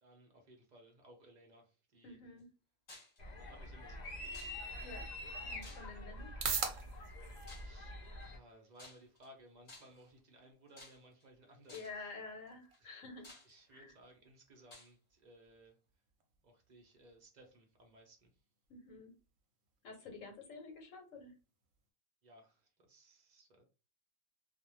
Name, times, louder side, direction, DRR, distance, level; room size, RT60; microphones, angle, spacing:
voice 1, 0.0-2.2 3.5-4.5 7.6-12.1 12.8-13.0 13.4-15.8 16.4-18.3 22.2-23.6, right 1 dB, 45° right, 2 dB, 0.6 m, -61 dB
voice 2, 2.0-2.5 4.8-5.1 5.5-6.3 11.7-13.3 13.7-13.9 18.7-19.1 19.8-21.3, left 3 dB, 80° left, 4 dB, 1.2 m, -49 dB
sound 1, 2.9-3.2 4.3-4.9 5.6-6.2 7.5-7.8 8.8-9.3 9.7-10.1 10.8-11.2 11.7-12.0 12.7-12.8 13.2-13.9 14.7-14.9, left 2 dB, 35° left, 1.1 m, -55 dB
sound 2, 3.2-8.4, left 1 dB, 50° left, 0.5 m, -46 dB
sound 3, 5.8-21.9, right 6 dB, 90° right, 1.0 m, -49 dB
2.4 x 2.1 x 3.0 m, 0.34 s
omnidirectional pair, 1.3 m